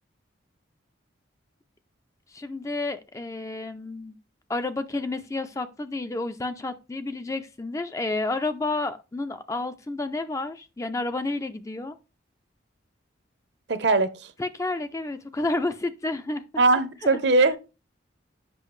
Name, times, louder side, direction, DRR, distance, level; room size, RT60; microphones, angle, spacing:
voice 1, 2.3-4.1 4.5-12.0 14.4-16.4 17.0-17.2, left 2 dB, 15° left, 0.3 m, -30 dB
voice 2, 13.7-14.1 16.6-17.6, right 3 dB, 60° right, 0.7 m, -20 dB
7.6 x 5.7 x 3.1 m
head